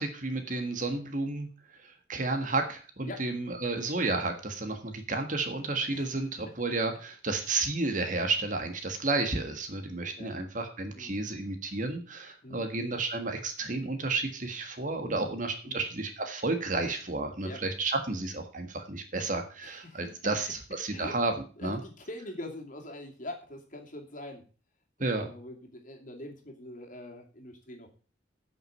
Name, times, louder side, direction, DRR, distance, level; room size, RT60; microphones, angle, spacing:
voice 1, 0.0-1.5 1.8-21.3 21.6-21.8 25.0-25.3, right 3 dB, 45° right, 6 dB, 1.6 m, -32 dB
voice 2, 5.9-6.5 10.2-10.3 10.9-11.2 12.4-12.7 15.1-15.3 15.6-15.8 17.4-17.6 19.6-20.1 20.9-21.2 21.6-24.4 25.0-27.9, left 1 dB, 45° left, 1 dB, 2.6 m, -43 dB
8.7 x 6.4 x 7.5 m, 0.38 s
head